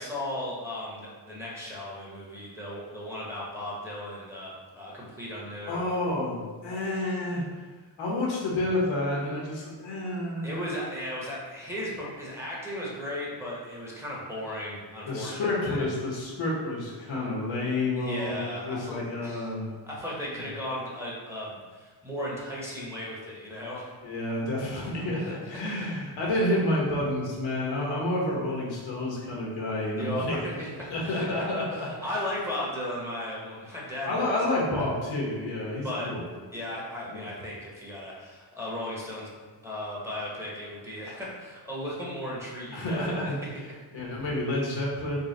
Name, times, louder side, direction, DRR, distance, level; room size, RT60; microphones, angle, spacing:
voice 1, 0.0-5.9 10.4-15.8 18.0-18.9 19.2-19.5 19.8-24.0 25.3-25.4 25.6-25.9 30.0-31.3 31.5-34.4 35.8-36.1 36.5-39.3 39.6-43.8, left 1 dB, 5° right, -6 dB, 1.0 m, -36 dB
voice 2, 5.7-7.4 8.0-10.6 15.1-19.7 24.0-30.4 30.9-31.9 34.0-36.3 37.1-37.3 42.7-43.4 43.9-45.2, left 1 dB, 85° left, -4 dB, 1.1 m, -29 dB
3.9 x 2.2 x 3.9 m, 1.4 s
cardioid pair, 105°, 44 cm